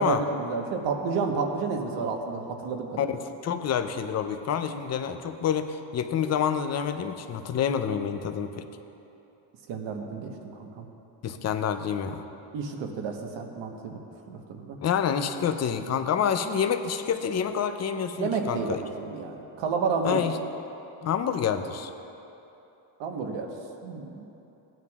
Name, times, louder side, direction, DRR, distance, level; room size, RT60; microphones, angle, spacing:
voice 1, 0.0-3.1 9.7-10.8 12.5-14.0 14.3-14.8 18.2-20.2 23.0-23.5 23.8-24.2, right 5 dB, 65° right, 3 dB, 1.2 m, -30 dB
voice 2, 3.0-8.7 11.2-12.2 14.8-18.8 20.0-20.4 21.0-21.9, left 8 dB, 35° left, 8 dB, 0.5 m, -28 dB
16.5 x 9.2 x 2.4 m, 3.0 s
cardioid pair, 120°, 47 cm